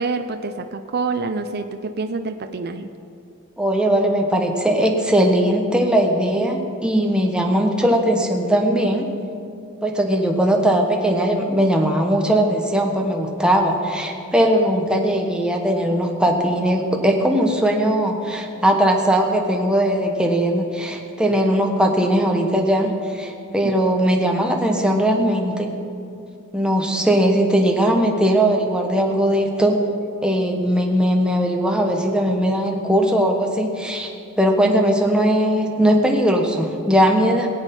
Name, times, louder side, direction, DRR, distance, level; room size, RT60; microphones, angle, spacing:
voice 1, 0.0-2.9 23.6-23.8, right 4 dB, 50° right, 7 dB, 0.6 m, -27 dB
voice 2, 3.6-9.1 9.8-25.7 26.5-29.8 30.2-37.5, right 1 dB, 5° right, 1 dB, 1.3 m, -19 dB
22.0 x 8.2 x 5.4 m, 2.6 s
head